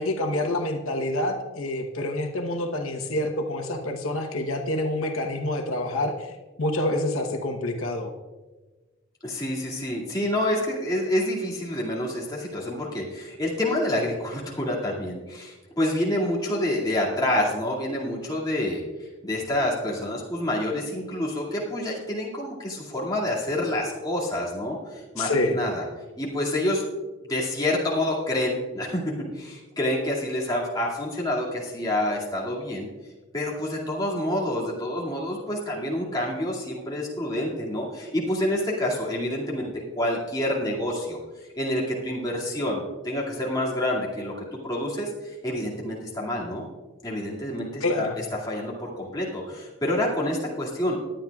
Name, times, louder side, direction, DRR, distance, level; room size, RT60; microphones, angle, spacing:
voice 1, 0.0-8.1 25.2-25.6 47.8-48.2, left 1 dB, 90° left, 3 dB, 1.0 m, -27 dB
voice 2, 9.2-18.8 19.2-25.8 26.2-26.8 27.2-32.9 33.3-41.2 41.6-46.6 47.0-51.0, left 1 dB, 20° left, -5 dB, 2.3 m, -28 dB
20.5 x 9.0 x 2.4 m, 1.2 s
head